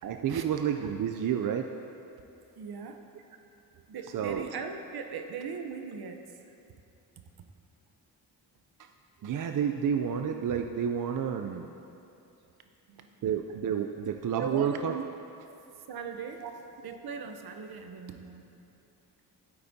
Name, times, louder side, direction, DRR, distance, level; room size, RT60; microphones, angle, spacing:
voice 1, 0.0-1.7 4.1-4.5 9.2-11.7 13.2-15.0 16.4-16.5, right 8 dB, 55° right, 5 dB, 0.5 m, -30 dB
voice 2, 2.6-3.0 3.9-6.4 12.9-13.1 14.4-14.8 15.9-18.4, right 5 dB, 70° right, 5 dB, 0.8 m, -39 dB
12.0 x 8.7 x 2.7 m, 2.7 s
cardioid pair, 75°, 38 cm